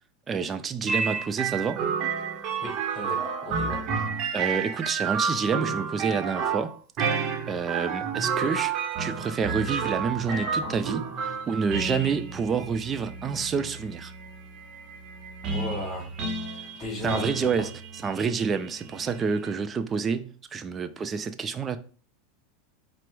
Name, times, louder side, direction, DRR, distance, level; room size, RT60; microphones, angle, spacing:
voice 1, 0.3-1.9 4.3-6.7 7.0-7.2 7.5-14.1 17.0-17.7 18.0-21.8, right 5 dB, 25° right, 0.4 m, -28 dB
sound 1, 0.9-19.6, right 5 dB, 45° right, 0.7 m, -31 dB
voice 2, 2.5-4.0 15.5-16.1 16.5-17.7, left 1 dB, 25° left, 2.3 m, -37 dB
4.5 x 2.0 x 4.5 m
supercardioid pair, 130°, 0 cm